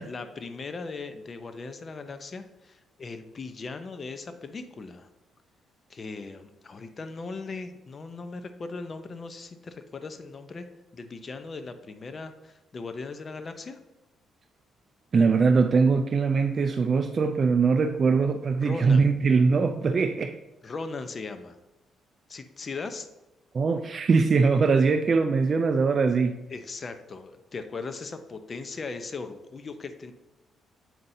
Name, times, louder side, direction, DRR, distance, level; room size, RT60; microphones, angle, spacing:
voice 1, 0.0-5.1 5.9-10.7 10.9-13.8 18.6-19.1 20.6-21.6 22.3-23.1 26.5-30.1, left 4 dB, 40° left, 0.6 m, -38 dB
voice 2, 15.1-20.4 23.5-26.4, right 4 dB, 45° right, 0.4 m, -22 dB
7.4 x 5.6 x 2.7 m
cardioid pair, 90°, 0 cm